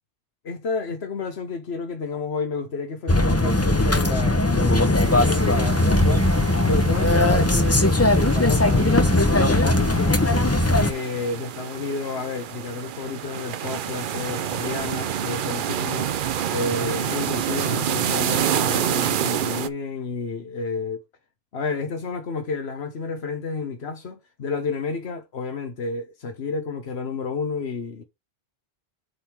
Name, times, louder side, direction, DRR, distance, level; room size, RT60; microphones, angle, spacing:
voice 1, 0.4-6.3 6.6-10.4 10.7-16.1 16.5-21.0 21.5-28.0, left 4 dB, 85° left, 1.4 m, -31 dB
sound 1, 3.1-10.9, left 1 dB, 15° left, 0.8 m, -19 dB
sound 2, 5.0-19.7, right 9 dB, 60° right, 0.7 m, -29 dB
8.4 x 3.6 x 4.5 m
omnidirectional pair, 1.0 m